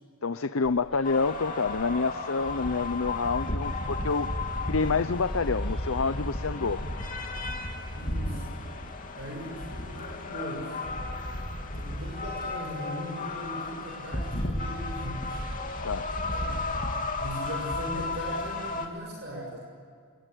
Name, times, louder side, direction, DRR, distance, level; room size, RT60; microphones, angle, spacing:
voice 1, 0.2-4.3 4.7-6.8 15.8-16.2, left 4 dB, 65° left, 13 dB, 0.7 m, -28 dB
sound 1, 0.6-18.8, equal, ahead, 6.7 m, -48 dB
sound 2, 1.0-18.9, left 2 dB, 35° left, 2.7 m, -33 dB
voice 2, 7.9-8.5 9.1-10.8 11.6-15.4 16.3-16.6 17.2-19.6, equal, 50° right, 0 dB, 6.3 m, -39 dB
27.5 x 21.5 x 9.2 m, 2.1 s
head